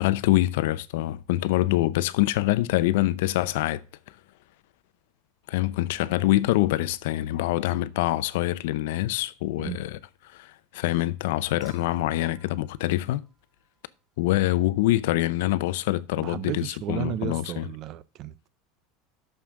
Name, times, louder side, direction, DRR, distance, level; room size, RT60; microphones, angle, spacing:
voice 1, 0.0-3.8 5.5-10.0 10.3-13.2 14.2-17.7, left 16 dB, 80° left, 0.6 m, -25 dB
Human group actions / Chink clink / Liquid, 11.6-14.0 15.5-15.6, right 3 dB, 10° right, 2.8 m, -58 dB
voice 2, 16.2-18.5, right 11 dB, 45° right, 0.6 m, -33 dB
6.6 x 5.8 x 7.2 m
supercardioid pair, 140°, 0 cm